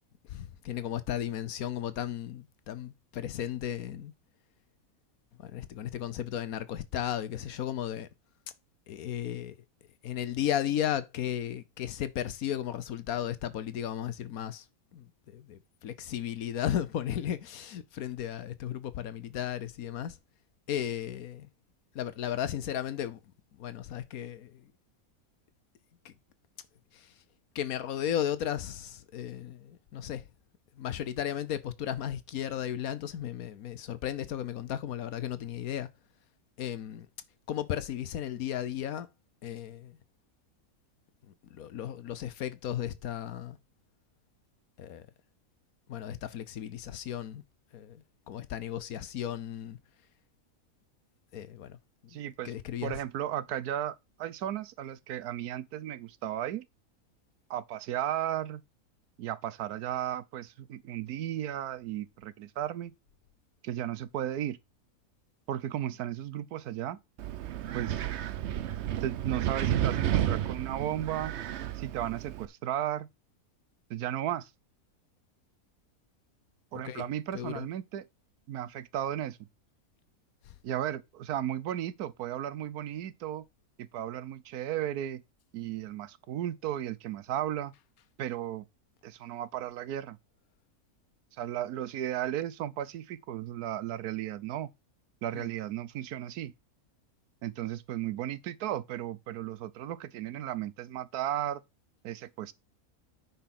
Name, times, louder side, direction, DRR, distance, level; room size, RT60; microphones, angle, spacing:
voice 1, 0.2-4.1 5.4-8.1 8.9-9.6 10.0-14.7 14.9-20.2 20.7-21.5 21.9-23.2 23.6-24.7 26.0-26.1 26.9-27.1 27.5-30.3 30.8-35.9 36.6-37.1 37.5-39.1 39.4-40.0 41.2-43.6 44.8-45.1 45.9-47.4 47.7-49.8 51.3-51.8 52.0-52.2 52.4-53.0 76.8-77.1 77.3-77.7 80.4-80.5 95.3-95.5, left 10 dB, 70° left, 1.2 m, -35 dB
voice 2, 52.1-52.5 52.8-56.6 57.5-58.6 59.2-62.9 63.6-64.6 65.5-67.0 67.7-68.0 69.0-71.3 71.7-73.1 73.9-74.5 76.7-78.0 78.5-79.4 80.6-83.5 83.8-85.2 85.5-87.7 88.2-88.7 89.0-90.2 91.4-94.7 95.2-96.5 97.4-101.6 102.0-102.5, right 11 dB, 85° right, 1.2 m, -35 dB
Wind, 67.2-72.5, right 11 dB, 60° right, 0.8 m, -32 dB
9.2 x 4.3 x 5.9 m
omnidirectional pair, 1.6 m